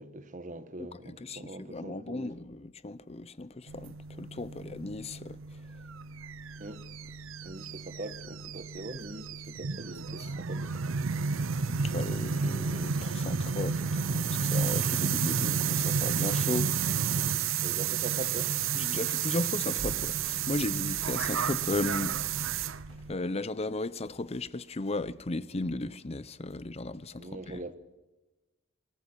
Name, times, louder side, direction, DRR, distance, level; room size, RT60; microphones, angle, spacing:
voice 1, 0.0-2.3 6.6-7.2 7.4-11.0 16.3-16.4 17.6-18.5 27.2-27.8, right 2 dB, 40° right, 1.4 m, -42 dB
voice 2, 0.8-5.4 11.7-16.7 18.7-22.5 23.1-27.6, left 2 dB, 30° left, 0.7 m, -36 dB
sound 1, 3.7-23.1, right 6 dB, 75° right, 0.6 m, -31 dB
22.0 x 14.0 x 9.9 m
head